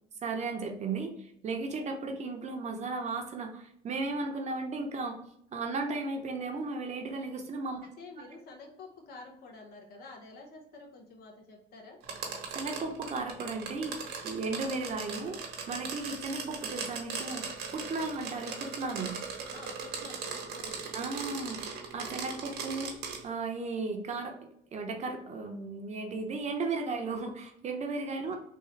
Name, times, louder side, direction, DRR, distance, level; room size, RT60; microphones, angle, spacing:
voice 1, 0.2-5.2 5.5-7.8 12.5-15.4 15.7-19.2 20.9-22.9 23.2-24.3 24.7-28.3, right 3 dB, 45° right, 3 dB, 0.8 m, -35 dB
voice 2, 7.8-12.0 19.5-21.0 28.3-28.4, left 3 dB, 65° left, 1 dB, 1.1 m, -49 dB
sound 1, 12.0-23.2, right 5 dB, 80° right, 1.1 m, -39 dB
3.6 x 2.7 x 3.2 m, 0.75 s
cardioid pair, 110°, 17 cm